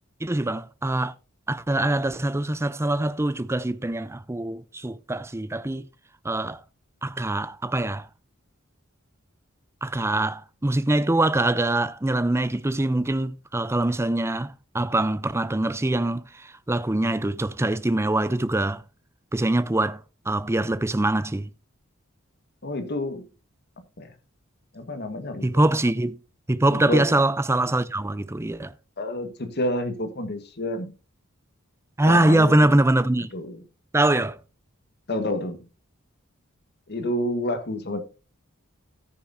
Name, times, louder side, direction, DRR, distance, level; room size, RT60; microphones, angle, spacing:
voice 1, 0.2-1.1 1.5-5.9 6.2-6.6 7.0-8.1 9.8-18.8 19.3-21.5 25.4-26.2 26.5-28.7 32.0-33.3 33.9-34.4, right 1 dB, 15° right, 0.5 m, -23 dB
voice 2, 22.6-23.3 24.0-24.1 24.7-25.6 26.7-27.2 29.0-30.9 32.0-32.7 33.3-33.6 35.1-35.6 36.9-38.0, left 1 dB, 50° left, 1.6 m, -29 dB
13.5 x 9.7 x 2.7 m
head